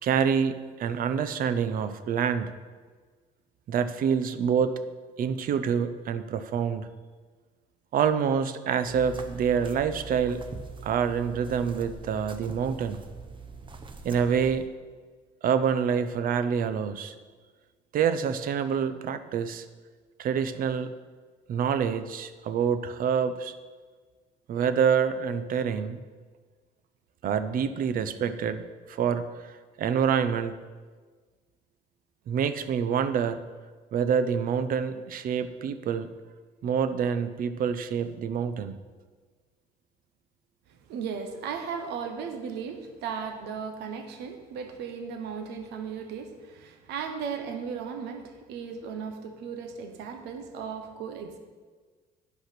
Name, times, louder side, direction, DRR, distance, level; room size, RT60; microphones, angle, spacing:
voice 1, 0.0-2.5 3.7-4.8 5.2-6.9 7.9-10.4 10.8-13.0 14.0-14.7 15.4-17.1 17.9-19.7 20.2-20.9 21.5-23.5 24.5-26.0 27.2-30.6 32.3-33.4 33.9-36.1 36.6-38.7, right 7 dB, 55° right, 12 dB, 0.7 m, -27 dB
sound 1, 8.8-14.7, right 4 dB, 30° right, 0.8 m, -42 dB
voice 2, 40.7-51.4, right 6 dB, 85° right, 6 dB, 1.1 m, -36 dB
10.5 x 5.5 x 5.9 m, 1.4 s
cardioid pair, 110°, 17 cm